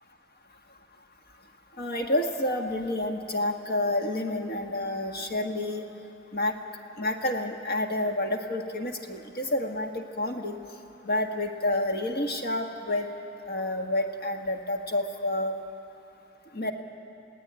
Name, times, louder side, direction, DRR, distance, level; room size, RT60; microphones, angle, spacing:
voice 1, 1.8-5.8 6.3-6.5 7.0-10.6 11.0-13.1 13.5-15.5 16.5-16.7, left 1 dB, 50° left, 3 dB, 1.7 m, -29 dB
28.5 x 17.5 x 9.7 m, 2.8 s
head